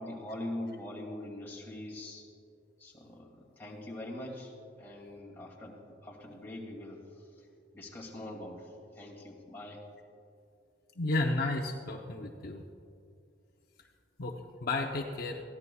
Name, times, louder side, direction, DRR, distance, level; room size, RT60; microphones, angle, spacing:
voice 1, 0.0-2.3 2.8-3.3 3.6-4.5 4.8-7.0 7.7-8.7 9.0-9.8, left 1 dB, 10° left, -3 dB, 2.4 m, -42 dB
voice 2, 11.0-12.6 14.2-14.3 14.6-15.4, left 2 dB, 50° left, 1 dB, 0.7 m, -32 dB
22.0 x 15.5 x 2.3 m, 2.5 s
head